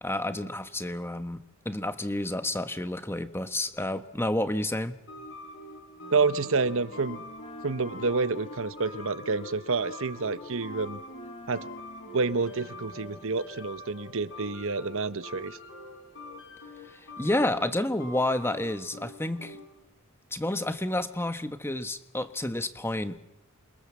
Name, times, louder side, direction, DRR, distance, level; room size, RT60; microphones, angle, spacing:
voice 1, 0.0-5.0 16.9-19.6 20.3-23.2, left 1 dB, 10° left, 10 dB, 1.2 m, -30 dB
sound 1, 5.1-19.8, left 1 dB, 60° left, 4.7 m, -45 dB
Wind instrument woodwind instrument, 6.0-13.5, left 2 dB, 30° left, 1.9 m, -49 dB
voice 2, 6.1-7.2 7.6-11.0 11.5-11.6 12.1-15.6, right 4 dB, 65° right, 13 dB, 1.1 m, -28 dB
28.0 x 23.5 x 7.5 m, 0.84 s
head